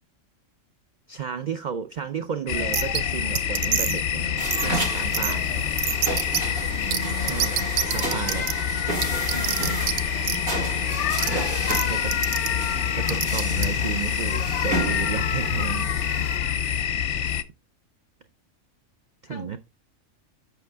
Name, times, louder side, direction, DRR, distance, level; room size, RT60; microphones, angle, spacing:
voice 1, 1.1-5.7 7.2-7.5 7.9-8.5 11.9-12.2 12.9-15.9 19.2-19.6, right 7 dB, 65° right, 0.4 m, -33 dB
sound 1, 2.5-17.4, left 9 dB, 65° left, 0.9 m, -26 dB
sound 2, 2.7-3.0 3.4-4.0 4.5-4.7 5.1-5.3 5.8-6.4 6.9-7.0 7.3-8.5 9.0-10.0 10.2-10.4 11.2-11.3 11.7-11.8 12.1-12.5 13.1-13.7, right 11 dB, 90° right, 1.0 m, -25 dB
sound 3, 4.4-16.4, right 2 dB, 40° right, 2.3 m, -33 dB
voice 2, 6.6-7.7 9.3-10.5 19.3-19.5, left 1 dB, 35° left, 1.0 m, -39 dB
7.8 x 5.8 x 3.4 m
omnidirectional pair, 1.4 m